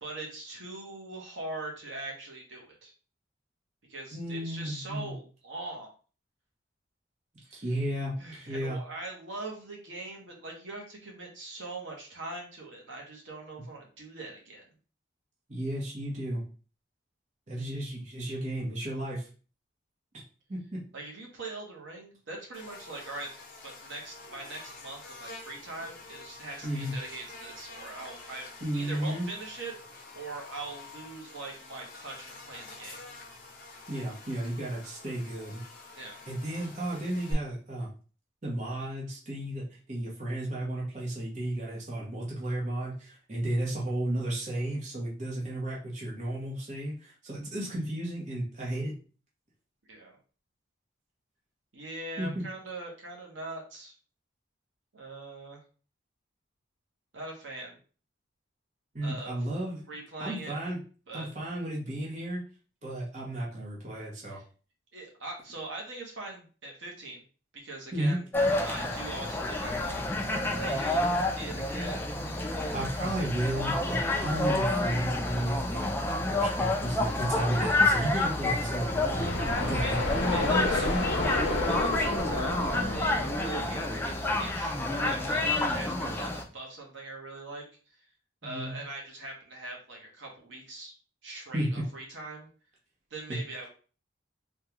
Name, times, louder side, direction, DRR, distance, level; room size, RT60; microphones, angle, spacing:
voice 1, 0.0-2.9 3.9-5.9 7.4-7.8 8.2-14.6 20.9-23.3 23.6-33.0 35.9-36.2 49.9-50.2 51.7-53.9 54.9-55.6 57.1-57.8 59.0-59.4 59.9-60.5 61.1-61.3 64.3-64.4 64.9-67.2 67.5-68.2 68.6-70.0 70.5-72.1 79.8-80.0 80.3-88.0 88.4-90.9 91.2-92.5 93.1-93.7, right 2 dB, 75° right, 0 dB, 0.9 m, -42 dB
voice 2, 4.1-5.1 7.5-8.8 15.5-16.4 17.5-19.3 20.5-20.8 26.6-27.0 28.6-29.3 33.9-35.6 36.3-37.9 38.4-48.9 52.2-52.4 58.9-59.8 60.2-60.8 61.1-62.4 62.8-64.4 67.9-68.2 72.7-75.9 76.3-80.0 80.7-80.9 85.5-85.8 88.4-88.8 91.5-91.7 93.3-93.4, right 1 dB, 40° right, -4 dB, 0.8 m, -33 dB
Buzz, 22.5-37.3, left 3 dB, 45° left, 0.8 m, -48 dB
sound 1, 68.3-86.4, left 2 dB, 10° left, 0.3 m, -29 dB
sound 2, 78.8-84.5, left 2 dB, 75° left, 0.6 m, -32 dB
3.5 x 2.3 x 2.9 m, 0.38 s
head